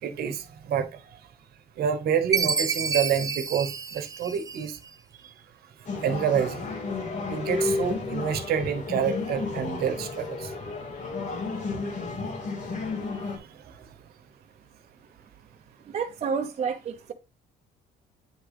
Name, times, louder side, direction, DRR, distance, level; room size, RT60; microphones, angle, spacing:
voice 1, 0.0-1.2 1.8-4.8 6.0-6.7 7.3-10.5, right 8 dB, 65° right, 1.2 m, -28 dB
Chime, 2.3-4.9, right 5 dB, 20° right, 0.5 m, -29 dB
sound 1, 5.9-13.4, left 3 dB, 45° left, 2.1 m, -32 dB
voice 2, 15.9-17.1, right 6 dB, 40° right, 0.9 m, -30 dB
9.0 x 3.8 x 3.5 m
cardioid pair, 110°, 17 cm